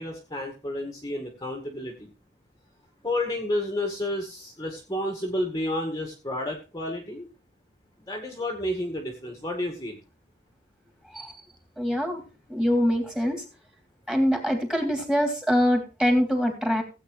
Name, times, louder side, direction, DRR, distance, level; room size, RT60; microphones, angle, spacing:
voice 1, 0.0-2.1 3.0-7.3 8.1-10.0, left 1 dB, 20° left, 3 dB, 1.9 m, -31 dB
voice 2, 11.8-12.2 12.5-13.4 14.1-16.8, equal, 5° right, 3 dB, 3.0 m, -24 dB
17.0 x 8.6 x 3.2 m, 0.31 s
head